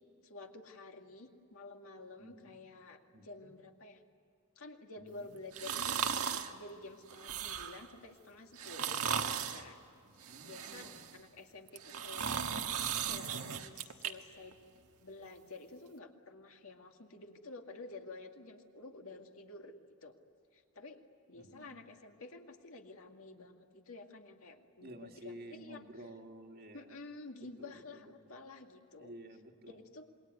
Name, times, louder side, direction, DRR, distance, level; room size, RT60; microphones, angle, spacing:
voice 1, 0.2-4.0 4.6-9.0 9.5-9.8 10.2-12.3 12.9-14.6 15.0-19.8 20.0-20.2 20.5-21.0 21.3-25.8 26.7-29.1 29.7-30.1, left 3 dB, 70° left, 3 dB, 2.1 m, -51 dB
voice 2, 2.2-2.6 3.1-3.5 5.0-5.4 10.0-11.0 21.4-21.7 24.8-26.9 27.6-28.1 29.0-29.8, right 1 dB, 45° right, 4 dB, 1.9 m, -52 dB
sound 1, 5.5-6.5 7.1-7.9 8.6-9.6 10.2-11.1 11.7-14.1 14.5-14.6, right 7 dB, 80° right, 1.4 m, -36 dB
27.5 x 21.5 x 9.5 m, 2.4 s
head